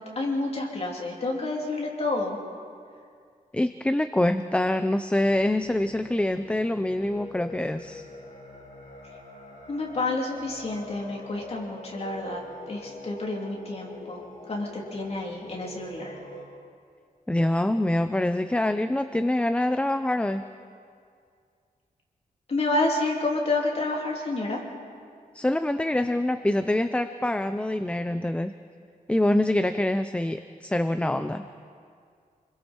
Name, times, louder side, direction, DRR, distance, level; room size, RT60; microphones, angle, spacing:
voice 1, 0.0-2.4 9.7-12.4 12.7-16.2 22.5-24.6, left 2 dB, 45° left, -2 dB, 3.3 m, -29 dB
voice 2, 3.5-8.1 17.3-20.4 25.3-28.5 29.1-31.4, left 1 dB, 10° left, 9 dB, 0.5 m, -25 dB
sound 1, 5.2-16.4, left 2 dB, 80° left, 6.4 m, -44 dB
29.0 x 21.5 x 4.5 m, 2.2 s
wide cardioid pair, 160°, 15 cm